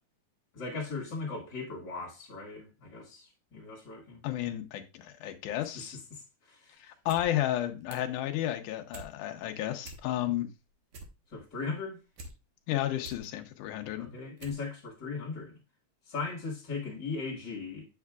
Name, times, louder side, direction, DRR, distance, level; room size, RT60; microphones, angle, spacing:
voice 1, 0.5-4.4 5.7-5.8 6.1-6.7 11.3-12.0 13.9-15.6 16.1-17.9, left 4 dB, 40° left, 2.0 m, -38 dB
voice 2, 4.2-6.0 6.8-10.5 12.7-14.1, left 13 dB, 80° left, 2.2 m, -32 dB
sound 1, 6.9-7.3 7.6-8.2 8.6-9.1 9.5-9.6 9.8-10.4 10.7-12.3 12.7-13.3 13.8-13.9 14.4-14.6 14.9-15.0, right 3 dB, 60° right, 1.6 m, -47 dB
8.4 x 6.6 x 2.4 m
omnidirectional pair, 3.8 m